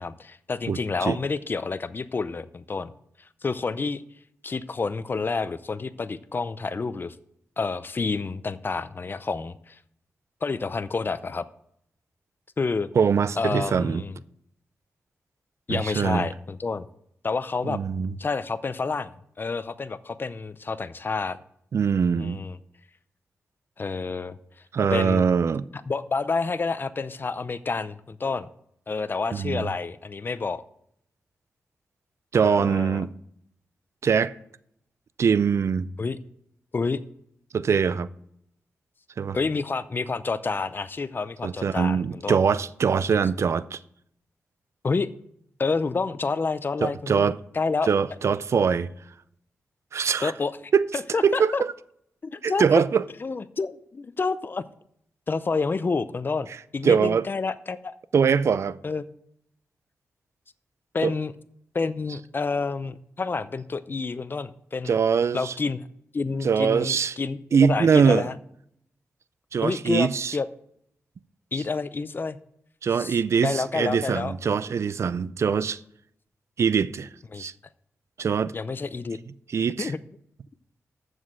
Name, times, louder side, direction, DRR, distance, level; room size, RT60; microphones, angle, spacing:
voice 1, 0.0-2.9 3.4-4.0 4.4-7.2 7.6-9.8 10.4-11.5 12.6-12.9 13.4-14.2 15.7-16.9 17.2-17.8 18.2-19.1 19.4-21.4 22.2-22.6 23.8-24.4 24.9-25.2 25.9-28.5 28.9-30.6 32.4-33.1 36.0-36.2 36.7-37.0 39.3-42.4 44.8-45.1 45.6-47.3 47.5-47.9 50.2-50.7 51.1-51.6 52.2-52.6 53.2-54.6 55.3-56.5 56.7-57.9 58.8-59.0 60.9-61.3 61.7-65.0 65.3-65.8 66.1-68.3 69.6-70.5 71.5-72.4 72.9-74.3 77.3-77.5 78.5-79.2 79.8-80.0, left 4 dB, 40° left, 0.6 m, -29 dB
voice 2, 0.7-1.2 13.0-14.0 15.7-16.2 17.7-18.1 21.7-22.4 24.7-25.7 29.3-29.7 32.3-33.1 34.0-34.3 35.2-35.9 37.5-38.1 39.2-39.4 41.4-43.8 46.8-47.4 47.9-48.9 49.9-50.3 50.7-50.9 51.2-51.5 52.4-53.0 56.8-57.3 58.1-58.8 61.0-61.1 64.8-65.5 66.4-67.1 67.5-68.3 69.5-70.4 72.8-75.8 76.6-77.1 77.4-77.5 78.2-78.5 79.5-79.9, right 6 dB, 60° right, 0.4 m, -22 dB
7.3 x 6.3 x 7.5 m
cardioid pair, 70°, 5 cm